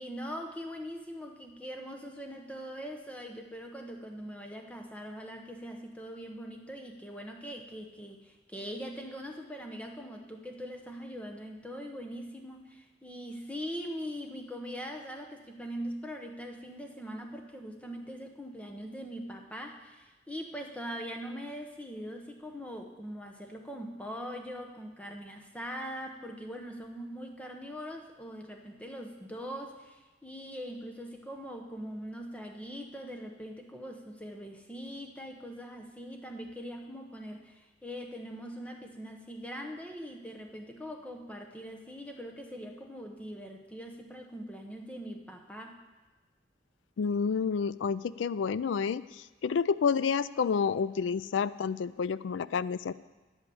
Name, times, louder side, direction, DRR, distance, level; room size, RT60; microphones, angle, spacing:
voice 1, 0.0-45.8, equal, 5° left, 3 dB, 0.9 m, -42 dB
voice 2, 47.0-52.9, left 6 dB, 85° left, 17 dB, 0.4 m, -29 dB
9.8 x 8.1 x 7.0 m, 1.2 s
head